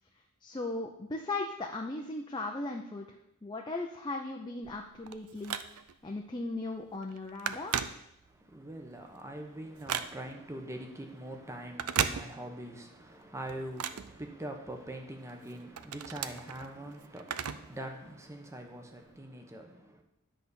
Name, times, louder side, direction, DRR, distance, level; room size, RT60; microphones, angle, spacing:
voice 1, 0.4-3.1 3.4-5.6 6.0-7.8, left 2 dB, 20° left, 0.6 m, -37 dB
Telephone, 4.6-6.1 6.6-6.8 7.0-8.5 8.9-10.5 11.6-12.8 13.1-14.8 15.3-17.8 18.1-18.2 19.1-19.2, right 8 dB, 90° right, 0.5 m, -36 dB
voice 2, 8.2-20.0, right 1 dB, 15° right, 1.0 m, -43 dB
10.5 x 4.1 x 7.0 m
head